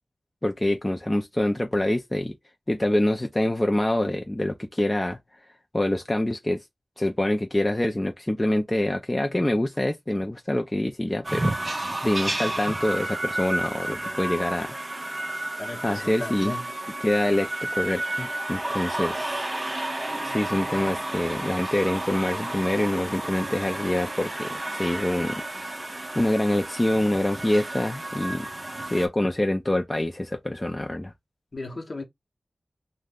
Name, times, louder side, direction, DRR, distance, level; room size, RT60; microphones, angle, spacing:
voice 1, 0.4-2.3 2.7-5.2 5.7-6.6 7.0-11.5 12.0-14.7 15.8-16.5 17.0-19.5 20.2-25.4 26.2-28.5 28.9-31.1, left 1 dB, 20° left, 0.4 m, -25 dB
sound 1, 11.2-29.1, right 1 dB, 30° right, 0.6 m, -31 dB
voice 2, 15.6-16.7 19.0-19.1 31.5-32.0, left 2 dB, 50° left, 0.8 m, -35 dB
2.5 x 2.1 x 3.5 m
wide cardioid pair, 100°, 0 cm